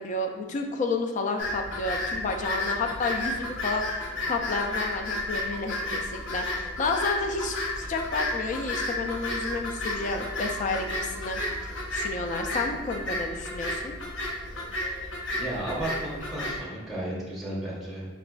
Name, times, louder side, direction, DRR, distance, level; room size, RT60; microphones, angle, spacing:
voice 1, 0.0-3.8 4.3-13.9, left 3 dB, 40° left, 4 dB, 0.3 m, -31 dB
sound 1, 1.4-16.6, left 1 dB, 70° left, 0.7 m, -32 dB
voice 2, 15.3-18.1, right 1 dB, ahead, -6 dB, 0.7 m, -33 dB
4.9 x 2.4 x 2.2 m, 1.2 s
head